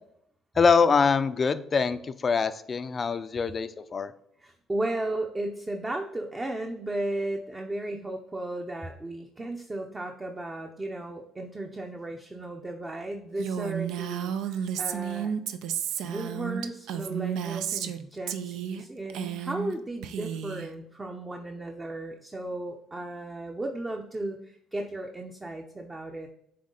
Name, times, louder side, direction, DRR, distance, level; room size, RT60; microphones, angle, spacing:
voice 1, 0.6-4.1, left 5 dB, 35° left, 12 dB, 0.4 m, -24 dB
voice 2, 4.4-15.3 16.0-26.3, right 1 dB, 20° right, 3 dB, 0.6 m, -35 dB
Female speech woman speaking, 13.4-18.0 18.3-18.8 19.1-19.7 20.0-20.7, right 9 dB, 80° right, 0.4 m, -32 dB
7.8 x 3.2 x 3.8 m, 0.72 s
cardioid pair, 100°, 0 cm